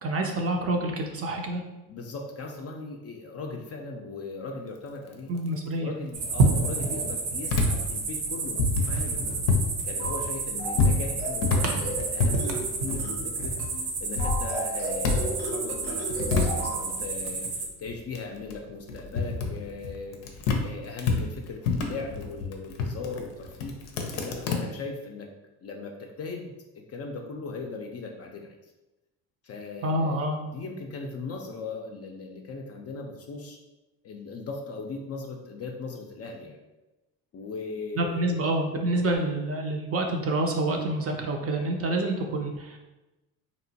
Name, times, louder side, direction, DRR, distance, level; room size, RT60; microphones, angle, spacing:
voice 1, 0.0-1.6 5.3-5.9 29.8-30.4 38.0-42.8, right 1 dB, 35° right, 2 dB, 0.4 m, -27 dB
voice 2, 1.9-5.3 5.8-9.4 9.8-13.5 14.0-23.7 24.2-25.3 25.6-28.6 29.4-30.2 30.5-33.6 34.0-36.6 37.3-38.4, left 4 dB, 35° left, 2 dB, 0.4 m, -38 dB
sound 1, 6.1-17.7, right 3 dB, 65° right, 0.7 m, -30 dB
sound 2, 7.5-9.7 10.0-13.6 13.9-15.5 15.7-20.7 21.0-24.6, left 4 dB, 85° left, 0.6 m, -28 dB
sound 3, 10.0-10.3 10.6-10.9 11.2-11.5 11.8-12.1 12.4-12.7 13.0-13.3 13.6-13.8 14.2-16.8, right 2 dB, 85° right, 1.3 m, -34 dB
2.9 x 2.1 x 2.7 m, 1.0 s
supercardioid pair, 80°, 43 cm